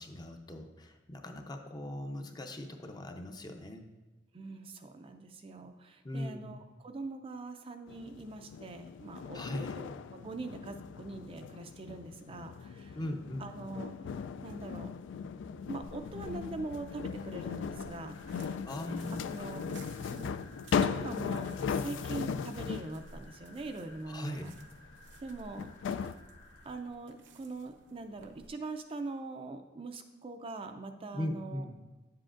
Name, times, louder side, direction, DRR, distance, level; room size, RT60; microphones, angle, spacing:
voice 1, 0.0-3.8 6.0-6.5 9.3-9.8 12.9-13.5 18.7-19.3 24.1-24.5 31.1-31.8, left 1 dB, 20° left, 4 dB, 0.6 m, -39 dB
voice 2, 4.3-13.0 13.4-14.9 15.7-18.4 19.3-20.3 20.8-24.5 25.2-25.7 26.6-31.6, right 3 dB, 30° right, 6 dB, 0.4 m, -43 dB
sound 1, 7.9-23.0 24.8-24.9 25.6-26.1, left 6 dB, 75° left, 0.3 m, -38 dB
sound 2, 15.8-28.5, right 3 dB, 70° right, 0.6 m, -58 dB
sound 3, 16.5-26.8, left 2 dB, 60° left, 1.9 m, -57 dB
9.3 x 7.5 x 2.5 m, 1.2 s
head